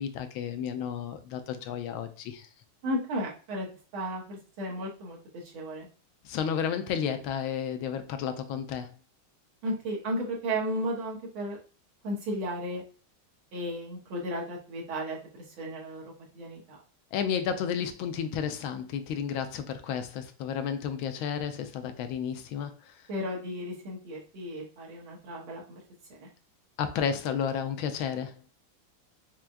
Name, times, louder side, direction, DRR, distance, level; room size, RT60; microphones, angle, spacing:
voice 1, 0.0-2.5 6.2-8.9 17.1-22.9 26.8-28.3, left 8 dB, 80° left, 8 dB, 1.4 m, -32 dB
voice 2, 2.8-3.7 3.9-5.2 5.5-5.9 9.6-11.6 12.0-12.8 13.5-16.0 16.3-16.8 23.1-25.8 26.2-26.3, equal, 80° right, -2 dB, 2.0 m, -34 dB
5.7 x 2.3 x 2.5 m, 0.36 s
omnidirectional pair, 2.3 m